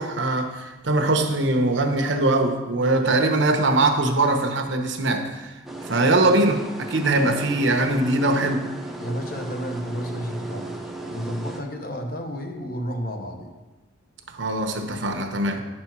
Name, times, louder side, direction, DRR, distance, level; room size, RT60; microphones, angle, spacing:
voice 1, 0.0-5.5 5.9-8.7 14.3-15.6, right 2 dB, 80° right, 5 dB, 1.0 m, -22 dB
sound 1, 5.7-11.6, right 2 dB, ahead, 0.7 m, -36 dB
voice 2, 9.0-10.7 11.0-13.5, equal, 50° left, 3 dB, 1.1 m, -31 dB
10.0 x 4.3 x 6.0 m, 1.2 s
head